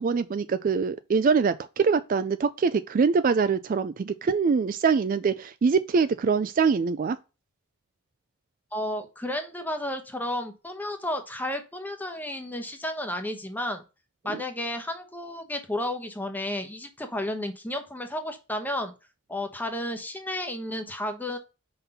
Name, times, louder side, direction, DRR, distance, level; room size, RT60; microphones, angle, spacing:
voice 1, 0.0-7.2 14.3-14.4, right 5 dB, 40° right, 0.3 m, -24 dB
voice 2, 8.7-13.8 14.2-18.9 19.3-21.4, left 1 dB, 10° left, 1.0 m, -32 dB
5.5 x 3.9 x 5.5 m
head